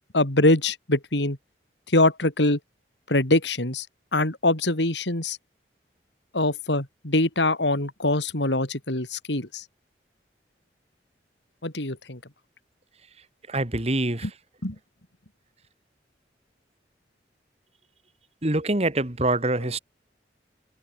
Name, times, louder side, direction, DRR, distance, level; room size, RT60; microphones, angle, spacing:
voice 1, 0.1-1.4 1.9-2.6 3.1-3.9 4.1-5.4 6.3-9.6 11.6-12.2 14.6-14.8, left 2 dB, 85° left, 4.2 m, -23 dB
voice 2, 13.5-14.3 18.4-19.8, right 2 dB, 35° right, 2.0 m, -25 dB
open air
head